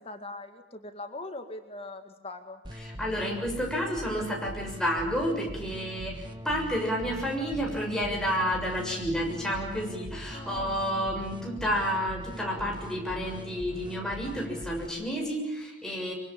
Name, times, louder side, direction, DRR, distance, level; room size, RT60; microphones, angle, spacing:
voice 1, 0.0-2.6 10.3-10.8, left 2 dB, 30° left, 6 dB, 2.1 m, -41 dB
sound 1, 2.6-14.9, equal, 25° right, 1.9 m, -41 dB
voice 2, 2.8-16.1, equal, 5° left, -1 dB, 6.9 m, -30 dB
25.0 x 24.5 x 8.9 m, 0.86 s
head